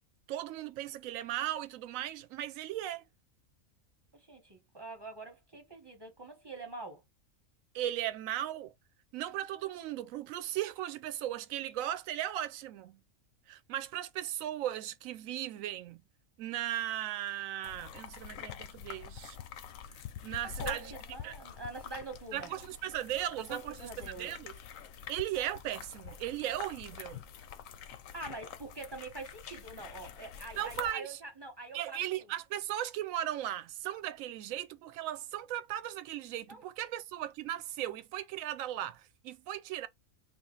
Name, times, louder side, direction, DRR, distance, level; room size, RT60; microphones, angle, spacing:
voice 1, 0.3-3.1 7.7-8.7 9.1-13.0 13.5-16.0 16.4-19.4 20.2-20.9 21.2-21.3 22.3-23.9 24.2-24.5 25.1-27.2 30.5-31.2 31.7-39.9, right 12 dB, 75° right, 1.0 m, -37 dB
voice 2, 4.1-7.0 20.3-22.5 23.5-24.3 27.9-32.3 36.5-36.6, right 3 dB, 20° right, 0.9 m, -45 dB
sound 1, 17.6-30.9, left 8 dB, 75° left, 1.0 m, -46 dB
2.9 x 2.5 x 4.3 m
omnidirectional pair, 1.4 m